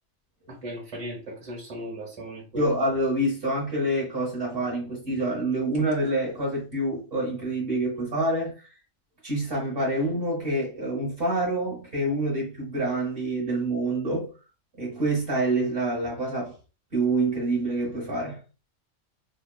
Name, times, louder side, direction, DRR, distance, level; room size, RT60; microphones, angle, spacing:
voice 1, 0.5-2.7, right 1 dB, 30° right, 1.1 m, -37 dB
voice 2, 2.5-8.8 9.2-14.3 14.8-16.5 16.9-18.4, right 1 dB, 50° right, 1.1 m, -27 dB
2.8 x 2.2 x 2.3 m
omnidirectional pair, 1.3 m